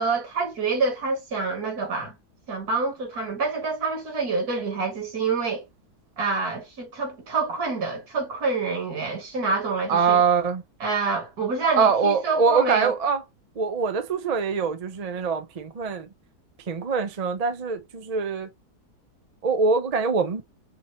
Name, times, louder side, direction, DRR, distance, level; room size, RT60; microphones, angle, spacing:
voice 1, 0.0-2.1 2.5-5.6 6.2-10.2 10.8-12.9, right 4 dB, 70° right, 2.4 m, -27 dB
voice 2, 9.9-10.6 11.8-13.2 13.6-16.1 16.7-18.5 19.4-20.4, right 5 dB, 40° right, 0.5 m, -23 dB
6.2 x 2.9 x 2.9 m
omnidirectional pair, 1.7 m